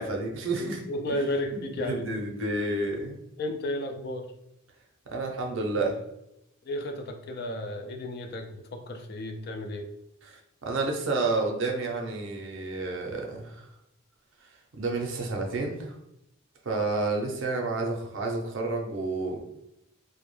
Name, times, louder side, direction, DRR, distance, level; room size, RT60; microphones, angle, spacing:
voice 1, 0.0-0.8 1.1-1.2 1.5-3.2 5.1-6.0 10.2-13.6 14.7-15.9 16.6-19.4, right 3 dB, 60° right, 1 dB, 0.5 m, -30 dB
voice 2, 0.6-2.1 3.4-4.3 6.6-9.9, left 1 dB, 45° left, 5 dB, 0.3 m, -33 dB
2.2 x 2.0 x 3.0 m, 0.85 s
head